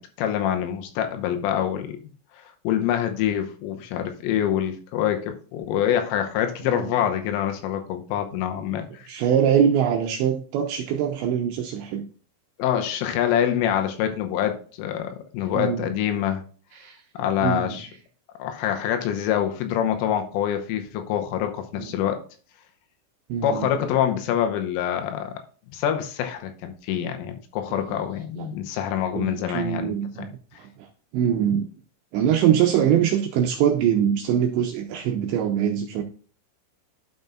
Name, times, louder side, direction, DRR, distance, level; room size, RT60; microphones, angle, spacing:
voice 1, 0.0-2.0 2.4-9.1 12.6-16.4 17.1-17.9 18.4-22.2 23.4-25.4 25.7-30.3, left 10 dB, 85° left, 6 dB, 3.4 m, -26 dB
voice 2, 9.1-12.1 15.5-15.9 16.8-17.0 17.4-17.7 21.8-21.9 23.3-23.7 28.4-28.5 29.1-30.3 30.6-30.7 31.1-31.7 32.1-36.0, right 9 dB, 85° right, 3 dB, 2.6 m, -23 dB
12.0 x 5.3 x 2.4 m, 0.40 s
omnidirectional pair, 5.9 m